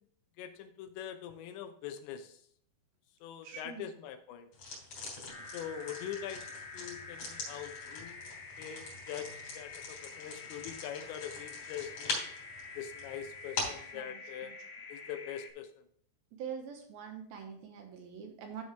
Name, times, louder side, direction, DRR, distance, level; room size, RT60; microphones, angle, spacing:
voice 1, 0.4-2.4 3.2-4.5 5.5-6.4 6.7-9.3 9.5-12.3 12.8-14.5 14.9-15.9, left 9 dB, 85° left, 7 dB, 3.2 m, -43 dB
voice 2, 3.4-3.9 13.7-14.5 16.3-18.6, right 7 dB, 70° right, 3 dB, 2.5 m, -45 dB
sound 1, 4.5-13.9, left 3 dB, 45° left, 4.3 m, -43 dB
sound 2, 5.3-15.5, left 4 dB, 65° left, 2.2 m, -48 dB
13.0 x 4.6 x 3.5 m, 0.66 s
omnidirectional pair, 5.1 m